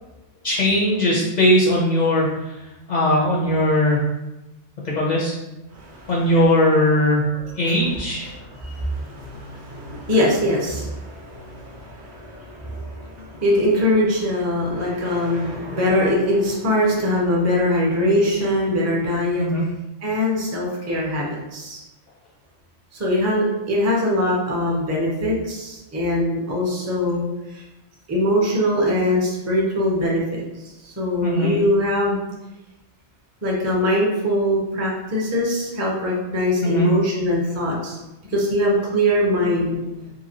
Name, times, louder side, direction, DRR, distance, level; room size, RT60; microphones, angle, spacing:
voice 1, 0.4-2.3 2.9-4.0 4.8-5.4 6.1-7.3 7.6-8.3 19.4-19.6 31.2-31.5 36.6-36.9, left 1 dB, 55° left, -4 dB, 0.5 m, -19 dB
voice 2, 5.7-6.1 7.4-7.9 8.2-19.4 20.0-21.8 22.9-27.2 27.5-27.6 28.1-30.2 30.8-32.2 33.4-38.0 38.3-39.8, left 1 dB, 20° right, -3 dB, 0.4 m, -22 dB
2.8 x 2.6 x 2.7 m, 0.99 s
omnidirectional pair, 1.2 m